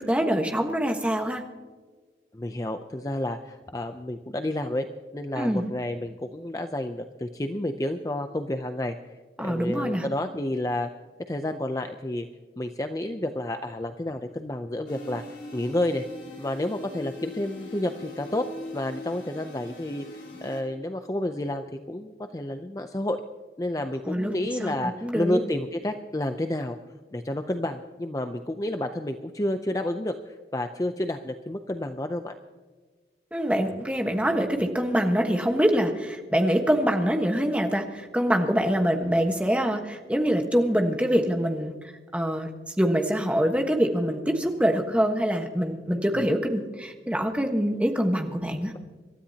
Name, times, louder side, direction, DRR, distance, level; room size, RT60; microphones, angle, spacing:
voice 1, 0.0-1.4 5.3-5.7 9.4-10.0 24.1-24.3 24.6-25.4 33.3-41.7 42.1-42.5 42.8-48.7, equal, 5° right, 4 dB, 1.3 m, -24 dB
voice 2, 2.3-4.8 5.1-9.0 9.4-10.9 11.3-12.3 12.6-15.2 15.5-16.0 16.4-18.5 18.7-23.2 23.6-26.8 27.1-32.3 46.1-46.3, left 1 dB, 20° left, 7 dB, 0.5 m, -30 dB
sound 1, 14.9-20.6, left 1 dB, 80° left, 3.6 m, -41 dB
26.5 x 13.0 x 2.9 m, 1.4 s
head